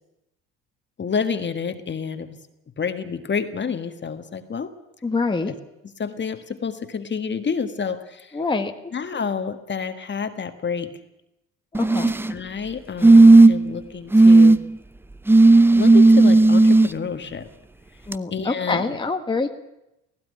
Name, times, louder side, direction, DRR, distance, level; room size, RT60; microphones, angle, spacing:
voice 1, 1.0-2.4 2.8-4.7 5.5-5.6 6.0-8.4 8.9-10.9 12.3-14.6 15.7-17.5 18.3-19.0, left 6 dB, 35° left, 8 dB, 1.8 m, -29 dB
voice 2, 5.0-5.5 8.3-8.7 11.8-12.1 18.1-19.5, left 3 dB, 15° left, 4 dB, 1.6 m, -25 dB
sound 1, 11.7-12.3 13.0-13.7 14.1-14.6 15.3-16.9 18.1-18.2, right 2 dB, 5° right, 0.6 m, -12 dB
16.5 x 16.0 x 9.8 m, 0.90 s
supercardioid pair, 80°, 33 cm